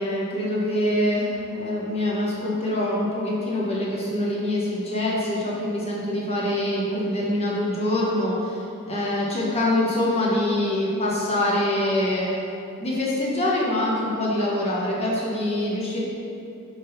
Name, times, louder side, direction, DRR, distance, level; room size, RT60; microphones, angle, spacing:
voice 1, 0.0-12.3 12.8-16.0, left 1 dB, 30° left, -6 dB, 1.3 m, -24 dB
5.2 x 3.9 x 5.7 m, 2.8 s
head